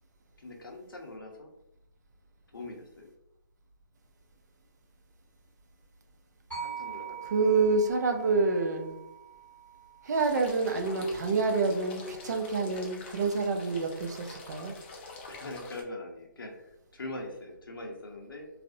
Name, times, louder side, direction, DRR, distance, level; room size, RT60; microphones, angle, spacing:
voice 1, 0.4-1.5 2.5-3.1 6.6-7.3 15.3-18.5, left 2 dB, 85° left, 2 dB, 0.6 m, -42 dB
sound 1, 6.5-10.7, right 7 dB, 5° left, 1.0 m, -43 dB
voice 2, 7.2-9.0 10.0-14.7, right 4 dB, 55° right, 4 dB, 0.4 m, -27 dB
sound 2, 10.1-15.8, left 3 dB, 30° left, 0.4 m, -46 dB
2.4 x 2.0 x 2.5 m, 0.85 s
hypercardioid pair, 145°, 11 cm